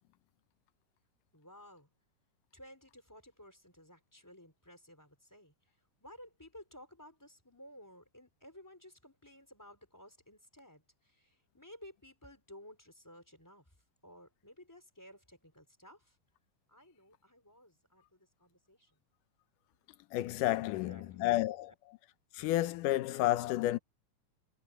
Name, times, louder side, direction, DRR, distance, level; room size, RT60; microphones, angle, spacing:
voice 1, 1.3-1.9 2.5-13.7 14.0-16.2 16.7-18.9 20.6-21.7, left 1 dB, 5° left, 3.8 m, -56 dB
voice 2, 20.1-21.7 22.3-23.8, left 16 dB, 80° left, 2.4 m, -31 dB
omnidirectional pair, 3.8 m